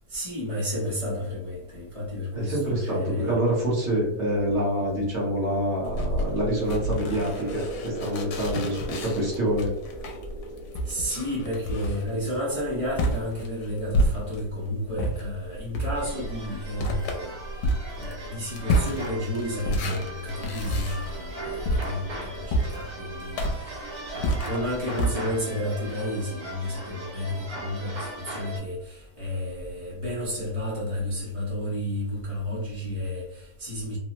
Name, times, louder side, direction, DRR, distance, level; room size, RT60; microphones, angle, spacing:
voice 1, 0.1-3.3 10.9-17.3 18.0-34.0, left 1 dB, 35° left, -8 dB, 0.6 m, -31 dB
voice 2, 2.3-9.7, equal, 50° right, -5 dB, 1.1 m, -26 dB
sound 1, 5.8-14.6 15.0-25.1, right 1 dB, 80° left, 1.1 m, -30 dB
sound 2, 7.3-13.5, right 2 dB, 90° right, 1.3 m, -40 dB
sound 3, 15.9-28.6, right 2 dB, 65° right, 1.6 m, -39 dB
3.3 x 2.0 x 2.8 m, 0.85 s
omnidirectional pair, 1.7 m